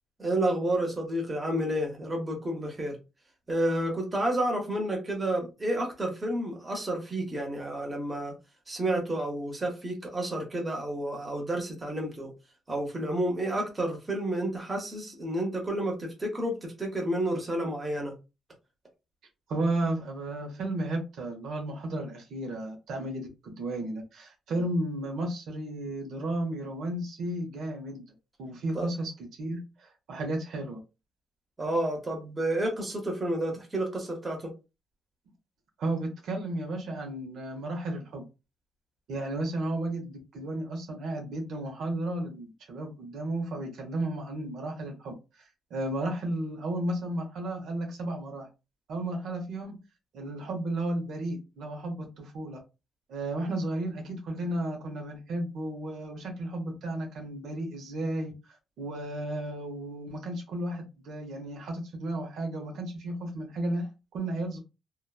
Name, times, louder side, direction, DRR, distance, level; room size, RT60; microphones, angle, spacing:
voice 1, 0.2-3.0 3.5-8.3 8.7-12.3 12.7-18.1 28.7-28.9 31.6-34.5, right 1 dB, 20° right, 1 dB, 0.9 m, -30 dB
voice 2, 19.5-28.1 28.4-29.1 29.4-30.8 35.8-38.2 39.1-48.5 48.9-49.8 50.1-52.6 53.1-58.3 58.8-64.6, right 1 dB, 75° right, 2 dB, 0.8 m, -33 dB
2.8 x 2.2 x 2.3 m, 0.27 s
cardioid pair, 115°, 0 cm